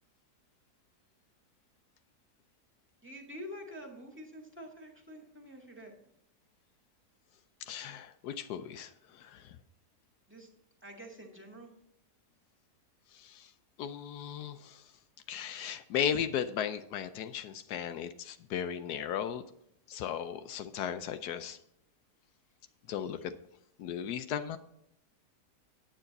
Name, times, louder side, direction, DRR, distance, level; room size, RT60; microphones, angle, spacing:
voice 1, 3.0-6.0 10.3-10.5 10.8-11.7, equal, 5° right, 1.8 m, -47 dB
voice 2, 7.7-9.6 13.1-13.5 13.8-14.8 15.3-19.4 19.9-21.6 22.9-23.3 23.8-24.6, left 9 dB, 80° left, 1.2 m, -36 dB
9.0 x 8.8 x 4.1 m
omnidirectional pair, 1.7 m